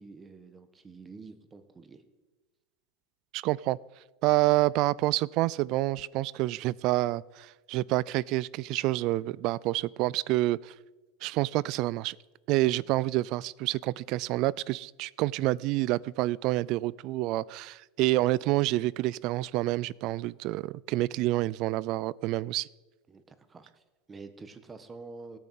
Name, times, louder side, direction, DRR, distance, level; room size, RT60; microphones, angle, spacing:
voice 1, 0.0-2.0 23.1-25.4, right 4 dB, 20° right, 10 dB, 1.5 m, -48 dB
voice 2, 3.3-3.8 4.2-10.7 11.2-12.2 12.5-22.7, right 18 dB, 50° right, 24 dB, 0.4 m, -28 dB
17.0 x 9.4 x 7.6 m, 1.2 s
supercardioid pair, 135°, 0 cm